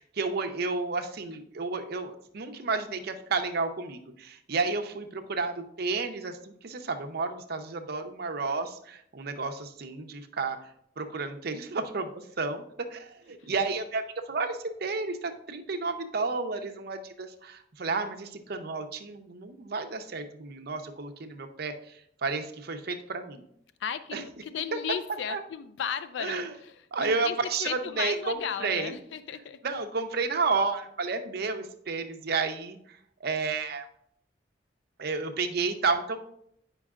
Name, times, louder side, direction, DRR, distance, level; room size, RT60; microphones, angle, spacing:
voice 1, 0.0-10.6 11.0-23.4 24.1-24.2 24.7-24.8 25.3-25.4 26.2-26.5 26.9-29.0 29.6-33.9 35.0-36.2, right 4 dB, 60° right, 6 dB, 0.7 m, -31 dB
voice 2, 23.8-29.6, left 8 dB, 75° left, 13 dB, 0.4 m, -35 dB
9.7 x 5.2 x 2.4 m, 0.72 s
head